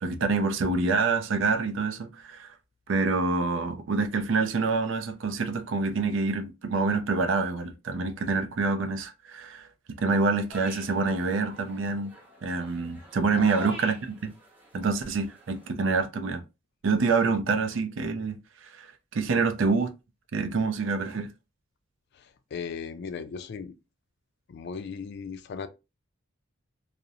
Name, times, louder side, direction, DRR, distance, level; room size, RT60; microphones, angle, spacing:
voice 1, 0.0-2.5 2.9-9.7 10.0-12.1 12.4-14.3 14.7-16.4 16.8-18.4 18.7-19.9 20.3-21.3, right 4 dB, 70° right, 0.4 m, -26 dB
sound 1, 10.5-15.7, equal, 10° right, 0.7 m, -46 dB
voice 2, 22.5-23.7 24.5-25.7, left 5 dB, 55° left, 0.3 m, -37 dB
2.5 x 2.0 x 2.7 m
head